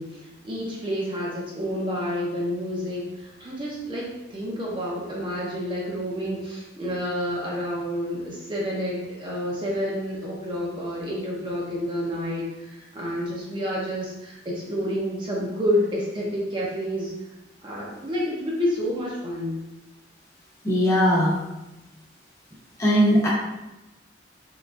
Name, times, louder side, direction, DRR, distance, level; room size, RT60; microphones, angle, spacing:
voice 1, 0.0-17.1 17.6-19.6, equal, 25° right, -4 dB, 0.5 m, -29 dB
voice 2, 20.6-21.4 22.8-23.3, equal, 15° left, -5 dB, 0.8 m, -19 dB
3.7 x 3.0 x 2.3 m, 0.98 s
head